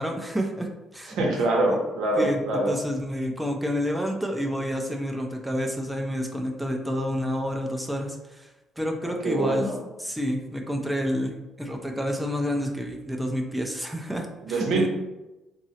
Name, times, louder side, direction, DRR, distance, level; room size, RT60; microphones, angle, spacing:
voice 1, 0.0-1.2 2.2-8.5 8.8-9.7 10.0-14.9, equal, 5° right, 1 dB, 0.4 m, -29 dB
voice 2, 1.1-2.7 9.2-9.8 14.5-14.9, right 2 dB, 80° right, -1 dB, 0.7 m, -24 dB
3.6 x 2.0 x 2.7 m, 1.0 s
cardioid pair, 80°, 0 cm